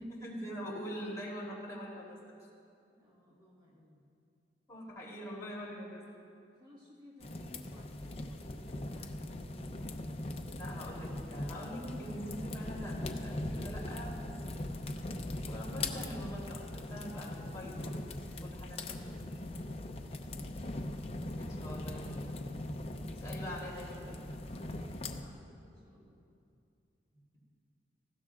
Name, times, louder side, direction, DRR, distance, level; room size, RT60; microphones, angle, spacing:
voice 1, 0.0-2.3 4.7-6.1 10.6-14.8 15.4-19.2 21.4-22.4 23.1-24.2, equal, 20° left, -6 dB, 3.1 m, -44 dB
voice 2, 3.0-4.1 6.6-9.6 19.2-20.6 24.5-26.3, left 1 dB, 25° right, -5 dB, 1.6 m, -59 dB
sound 1, 7.2-25.2, left 1 dB, 35° left, 0.6 m, -40 dB
19.5 x 15.5 x 2.4 m, 2.5 s
head